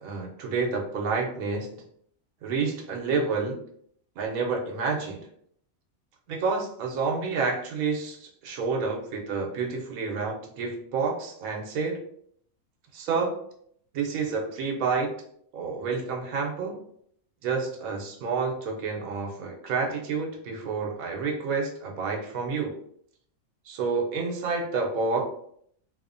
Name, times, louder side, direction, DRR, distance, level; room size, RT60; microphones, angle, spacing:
voice 1, 0.0-1.7 2.4-3.6 4.2-5.2 6.3-12.0 12.9-13.3 13.9-15.1 15.5-16.8 17.4-22.7 23.7-25.2, right 4 dB, 80° right, 1 dB, 1.0 m, -29 dB
2.8 x 2.1 x 2.4 m, 0.65 s
omnidirectional pair, 1.5 m